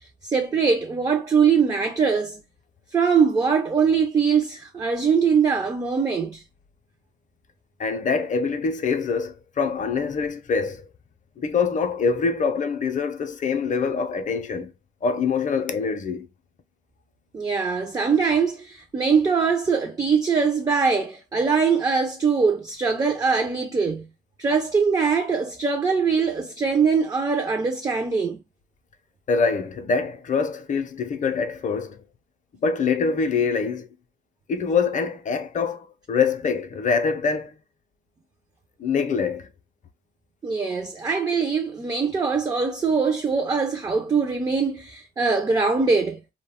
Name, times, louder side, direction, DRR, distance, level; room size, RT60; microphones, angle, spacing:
voice 1, 0.2-2.4 2.9-6.4 17.3-24.1 24.4-28.4 40.4-46.2, right 5 dB, 20° right, 0.3 m, -22 dB
voice 2, 7.8-10.9 11.4-14.7 15.0-16.3 29.3-32.0 32.6-33.9 34.5-37.6 38.8-39.5, left 5 dB, 40° left, 0.5 m, -24 dB
2.3 x 2.1 x 3.4 m
cardioid pair, 90°, 20 cm